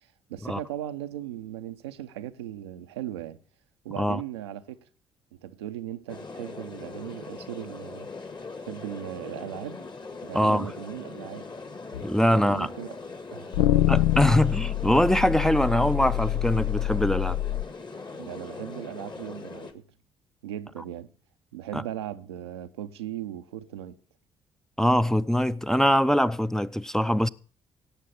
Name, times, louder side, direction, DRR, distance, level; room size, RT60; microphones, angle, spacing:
voice 1, 0.0-3.4 3.8-4.8 5.3-8.1 8.6-9.8 10.2-11.5 12.3-13.0 13.3-13.9 18.1-19.9 20.4-21.1 21.5-24.0, right 12 dB, 80° right, 0.7 m, -38 dB
sound 1, 6.1-19.7, left 4 dB, 35° left, 1.9 m, -41 dB
voice 2, 10.3-10.7 12.0-12.7 13.9-17.4 21.7-21.8 24.8-27.3, equal, 5° left, 0.6 m, -23 dB
sound 2, 11.9-12.0 13.5-17.6, left 13 dB, 75° left, 0.5 m, -25 dB
17.0 x 7.4 x 5.6 m
figure-of-eight pair, 45°, 13 cm